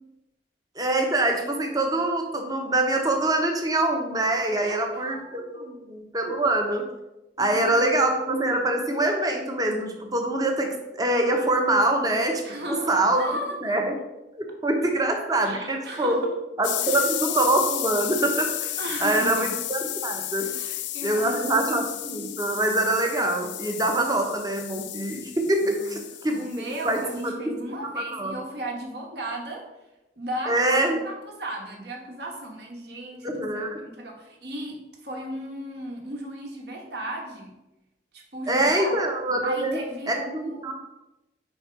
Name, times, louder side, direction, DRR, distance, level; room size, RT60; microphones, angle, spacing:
voice 1, 0.8-6.8 7.4-12.4 12.7-13.2 13.6-14.0 14.4-16.2 16.6-18.7 19.0-20.5 21.0-26.4 26.8-27.5 28.1-28.3 30.5-31.0 33.2-33.7 38.5-39.8 40.1-40.7, right 2 dB, 20° right, 3 dB, 0.8 m, -24 dB
voice 2, 4.6-5.8 7.4-7.8 12.4-13.8 15.4-16.3 16.8-17.1 18.8-19.5 20.4-21.8 25.6-26.0 26.3-29.6 30.2-37.5 38.1-39.0 39.4-40.7, right 1 dB, 60° right, 0 dB, 1.3 m, -36 dB
sound 1, 16.6-27.3, left 14 dB, 75° left, 0.4 m, -33 dB
5.1 x 4.3 x 4.5 m, 0.97 s
head